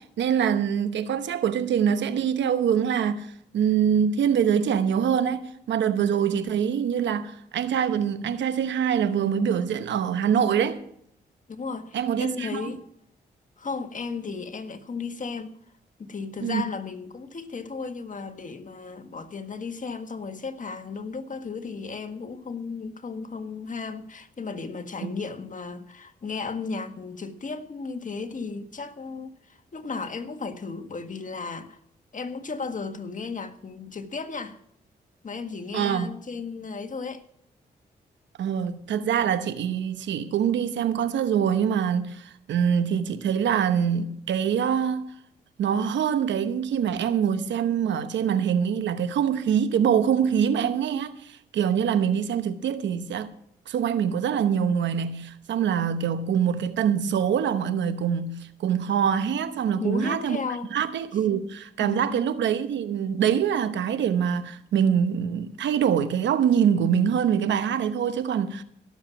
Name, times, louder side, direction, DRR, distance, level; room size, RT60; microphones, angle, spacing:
voice 1, 0.0-10.8 11.9-12.7 16.4-16.6 25.0-25.1 35.7-36.1 38.4-45.1 45.6-53.3 53.7-60.4 60.7-68.6, right 8 dB, 80° right, 1.0 m, -24 dB
voice 2, 11.5-12.8 13.6-15.6 16.0-31.8 32.1-34.6 35.2-37.2 59.8-60.7 61.8-62.2, left 4 dB, 45° left, 1.6 m, -35 dB
17.0 x 7.3 x 6.0 m
supercardioid pair, 50°, 19 cm